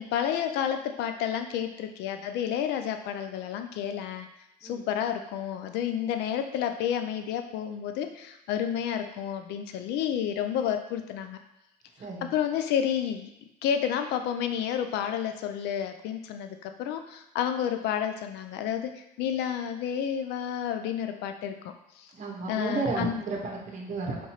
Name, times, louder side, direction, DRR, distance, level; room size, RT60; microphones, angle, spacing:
voice 1, 0.0-4.3 4.6-11.4 12.2-13.3 13.6-21.5 22.0-22.1 22.5-23.2, left 9 dB, 85° left, 7 dB, 0.4 m, -30 dB
voice 2, 12.0-12.3 22.1-24.3, right 3 dB, 45° right, 0 dB, 0.9 m, -33 dB
4.4 x 2.8 x 3.0 m, 0.87 s
cardioid pair, 110°, 17 cm